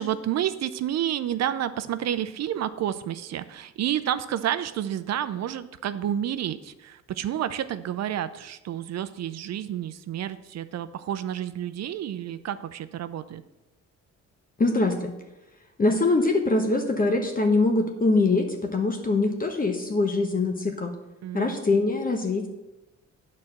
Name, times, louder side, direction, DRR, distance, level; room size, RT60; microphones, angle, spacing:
voice 1, 0.0-13.4 21.2-21.5, right 10 dB, 60° right, 13 dB, 0.5 m, -30 dB
voice 2, 14.6-15.1 15.8-20.9 21.3-22.5, left 3 dB, 30° left, 4 dB, 0.9 m, -23 dB
8.8 x 4.2 x 6.5 m, 0.99 s
cardioid pair, 90°, 30 cm